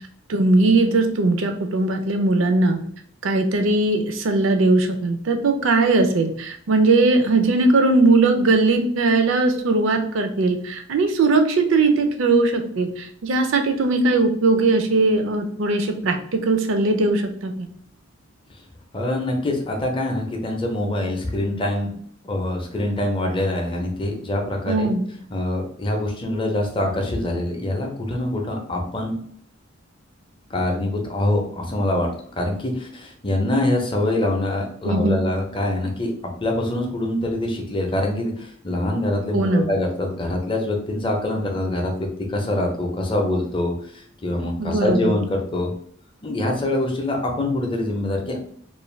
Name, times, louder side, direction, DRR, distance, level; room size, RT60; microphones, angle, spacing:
voice 1, 0.3-2.8 3.2-17.7 24.7-25.1 34.8-35.2 39.3-39.7 44.6-45.1, right 3 dB, 65° right, 5 dB, 0.5 m, -19 dB
voice 2, 18.9-21.9 22.2-24.9 25.3-29.2 30.5-45.7 46.2-48.4, left 1 dB, 25° left, 1 dB, 0.5 m, -24 dB
2.5 x 2.2 x 3.1 m, 0.62 s
head